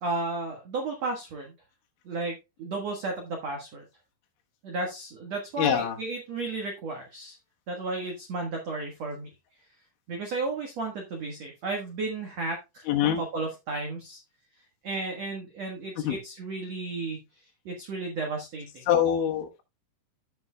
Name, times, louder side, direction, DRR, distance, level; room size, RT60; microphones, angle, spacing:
voice 1, 0.0-1.5 2.0-3.8 4.6-7.4 7.7-9.3 10.1-12.8 13.2-14.2 14.8-18.9, right 3 dB, 75° right, 1.5 m, -33 dB
voice 2, 5.6-6.0 12.9-13.2 16.0-16.2 18.9-19.6, left 9 dB, 80° left, 3.7 m, -24 dB
15.0 x 6.4 x 2.3 m
omnidirectional pair, 5.4 m